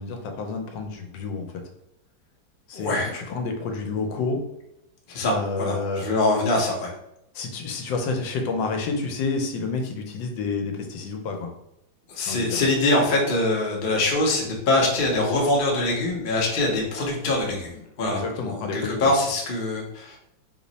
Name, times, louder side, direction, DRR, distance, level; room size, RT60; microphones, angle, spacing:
voice 1, 0.0-1.5 2.7-4.4 5.2-6.0 7.3-11.5 12.3-12.6 18.1-19.0, left 4 dB, 85° left, 4 dB, 1.3 m, -29 dB
voice 2, 2.7-3.1 5.1-6.9 12.1-20.2, left 2 dB, 55° left, -1 dB, 0.5 m, -24 dB
3.4 x 2.0 x 3.9 m, 0.82 s
omnidirectional pair, 2.0 m